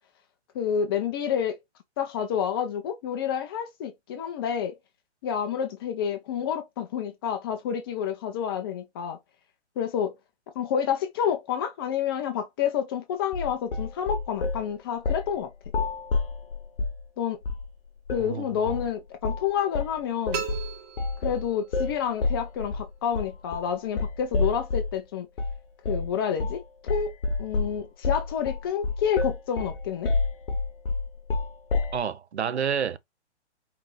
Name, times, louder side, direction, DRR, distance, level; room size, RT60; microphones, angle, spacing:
voice 1, 0.5-1.6 2.0-4.8 5.2-9.2 9.8-10.1 10.6-15.5 17.2-17.4 18.1-20.4 21.2-25.3 25.9-26.6 26.9-30.1, left 8 dB, 20° left, 0.5 m, -29 dB
sound 1, 13.3-14.6 15.0-15.3 15.6-17.0 17.4-17.7 18.1-18.3 18.7-18.9 19.2-19.5 19.7-25.0 25.4-25.6 25.8-26.1 26.4-26.6 26.9-32.0, left 3 dB, 50° left, 1.0 m, -29 dB
sound 2, 20.3-21.9, right 8 dB, 25° right, 1.5 m, -36 dB
voice 2, 31.9-33.0, right 7 dB, 65° right, 0.7 m, -28 dB
4.6 x 3.4 x 3.2 m
figure-of-eight pair, 125°, 35 cm